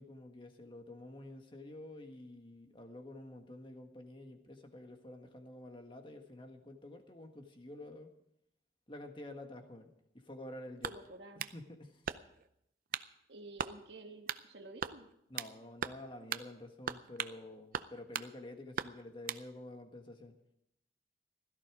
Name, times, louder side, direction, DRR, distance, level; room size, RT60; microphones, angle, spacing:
voice 1, 0.0-8.1 8.9-11.0 11.4-12.2 15.3-20.4, left 1 dB, 30° left, 5 dB, 1.7 m, -49 dB
sound 1, 10.8-11.6 12.1-12.5 12.9-13.1 13.6-13.8 14.3-14.5 14.8-15.5 15.8-16.0 16.3-16.5 16.9-17.4 17.7-18.3 18.8-19.4, right 7 dB, 50° right, 0.6 m, -39 dB
voice 2, 10.8-11.5 13.3-15.1, right 2 dB, 80° right, 3 dB, 1.5 m, -51 dB
16.0 x 14.0 x 4.9 m, 0.80 s
head